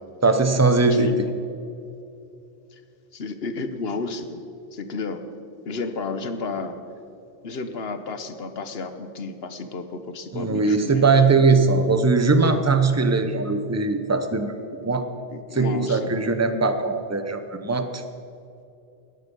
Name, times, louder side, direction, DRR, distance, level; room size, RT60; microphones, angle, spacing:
voice 1, 0.2-1.1 10.3-15.1 15.5-18.0, right 4 dB, 15° right, 8 dB, 0.8 m, -20 dB
voice 2, 0.8-1.3 2.7-2.8 3.1-4.4 4.7-5.2 5.6-6.8 7.4-11.1 12.5-12.9 15.3-16.1, left 4 dB, 75° left, 9 dB, 1.3 m, -32 dB
18.0 x 12.0 x 5.4 m, 2.6 s
omnidirectional pair, 1.0 m